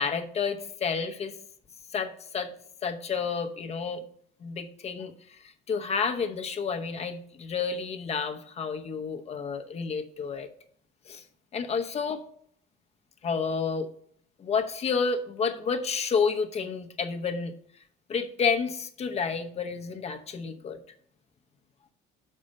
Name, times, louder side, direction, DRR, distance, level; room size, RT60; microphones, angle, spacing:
voice 1, 0.0-1.4 1.9-2.5 2.8-4.0 4.4-10.5 11.1-11.2 11.5-12.2 13.2-13.9 14.4-17.5 18.1-20.8, left 5 dB, 35° left, 7 dB, 0.8 m, -30 dB
6.4 x 5.5 x 6.3 m, 0.62 s
cardioid pair, 140°, 18 cm